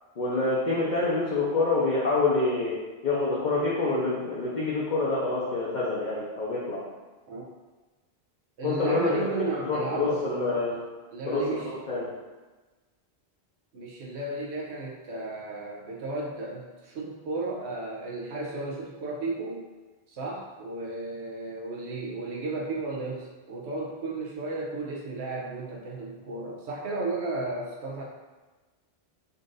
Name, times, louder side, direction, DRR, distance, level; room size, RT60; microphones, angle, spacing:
voice 1, 0.2-2.7 3.0-6.8 8.6-9.2 9.6-10.8 11.3-12.1, left 3 dB, 50° left, -7 dB, 0.8 m, -26 dB
voice 2, 8.6-10.6 11.1-11.7 13.7-19.7 20.1-28.0, right 3 dB, 85° right, -3 dB, 1.0 m, -34 dB
4.0 x 2.5 x 3.8 m, 1.2 s
omnidirectional pair, 1.1 m